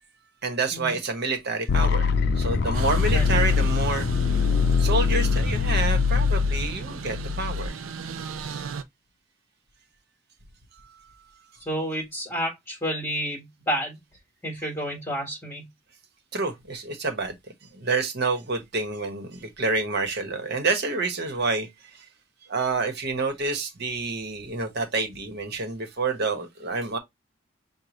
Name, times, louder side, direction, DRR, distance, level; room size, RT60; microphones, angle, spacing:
voice 1, 0.4-4.3 4.8-7.8 16.3-17.3 17.7-22.0 22.5-27.0, right 3 dB, 55° right, 1.2 m, -28 dB
sound 1, 1.7-7.7, left 5 dB, 55° left, 0.5 m, -23 dB
sound 2, 2.7-8.8, right 5 dB, 85° right, 0.5 m, -36 dB
voice 2, 11.7-14.0 14.4-15.6, equal, 15° left, 1.6 m, -30 dB
6.7 x 2.4 x 3.0 m
head